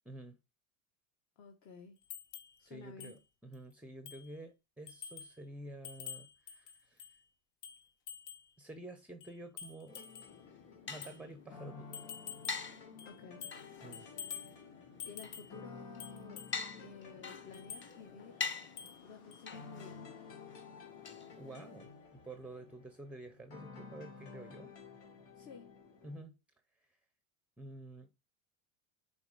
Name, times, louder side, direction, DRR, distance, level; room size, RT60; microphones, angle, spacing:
voice 1, 0.1-0.4 2.6-7.2 8.6-10.0 10.9-12.1 13.8-14.1 21.4-24.7 26.0-26.3 26.7-27.0 27.6-28.1, right 2 dB, 5° right, 0.6 m, -50 dB
voice 2, 1.4-2.0 2.6-3.2 13.0-13.5 15.1-16.4 16.7-18.4 19.0-20.2 25.3-25.7, left 5 dB, 45° left, 1.3 m, -52 dB
sound 1, 2.1-2.6 3.0-3.2 3.5-3.6 4.1-4.3 4.9-5.4 5.8-7.2 7.6-8.5 9.2-10.4 11.0-11.2 11.9-12.7 13.0-13.7 13.9-14.5 15.0-15.6 16.0-16.6 17.5-17.9 18.8-19.0 19.3-19.4, left 8 dB, 65° left, 1.4 m, -48 dB
sound 2, 9.9-26.2, left 4 dB, 80° left, 2.4 m, -54 dB
sound 3, 10.3-21.9, left 5 dB, 25° left, 1.2 m, -46 dB
7.0 x 4.4 x 4.9 m
supercardioid pair, 110°, 42 cm